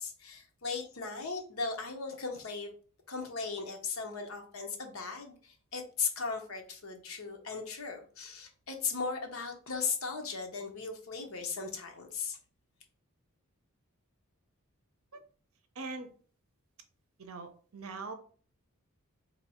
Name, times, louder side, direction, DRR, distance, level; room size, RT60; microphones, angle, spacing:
voice 1, 0.0-2.7 3.1-12.4, left 5 dB, 70° left, 4 dB, 0.8 m, -37 dB
voice 2, 15.8-16.1 17.2-18.1, right 3 dB, 70° right, 7 dB, 0.6 m, -41 dB
2.8 x 2.7 x 4.1 m, 0.43 s
head